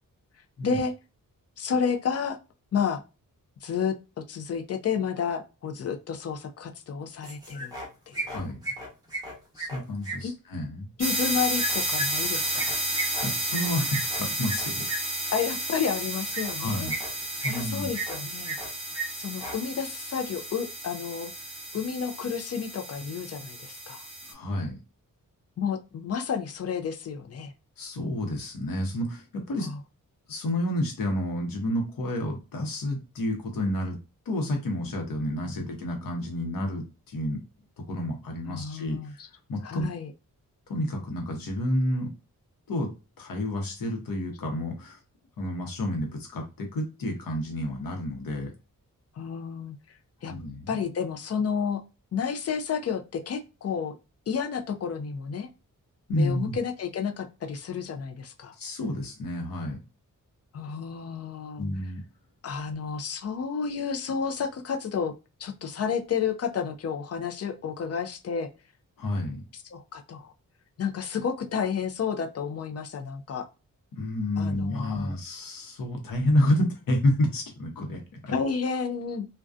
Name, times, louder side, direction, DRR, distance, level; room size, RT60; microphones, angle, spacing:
voice 1, 0.6-0.9 1.6-2.4 2.7-3.0 3.6-3.9 4.3-7.7 8.1-8.3 10.2-10.3 11.0-12.7 15.3-16.9 17.4-18.6 19.1-21.3 21.7-24.1 25.6-27.5 29.6-29.8 35.4-35.7 38.5-39.3 39.6-40.1 49.2-49.8 50.2-50.3 50.7-51.8 52.1-54.0 54.3-55.5 56.1-58.5 60.5-61.9 62.4-65.1 65.4-68.5 69.5-70.3 70.8-73.5 74.4-75.1 78.3-79.3, left 6 dB, 50° left, 5 dB, 0.4 m, -31 dB
sound 1, 7.2-7.9 8.1-10.2 11.6-15.0 16.3-16.5 16.9-17.6 17.9-18.7 18.9-19.0 19.3-19.6, right 2 dB, 10° right, 0.9 m, -34 dB
voice 2, 8.3-8.6 9.5-10.9 13.2-14.8 16.6-16.9 17.4-17.9 24.3-24.8 27.8-29.7 30.3-34.0 34.3-37.4 37.8-39.2 39.5-39.9 40.7-42.1 42.7-42.9 43.2-45.0 45.4-48.5 50.2-50.7 56.1-56.6 58.6-59.8 61.6-62.0 69.0-69.4 73.9-78.3, left 1 dB, 80° left, 2 dB, 0.9 m, -29 dB
sound 2, 11.0-24.3, right 1 dB, 40° right, 0.9 m, -32 dB
2.5 x 2.2 x 2.3 m, 0.30 s
wide cardioid pair, 125°, 33 cm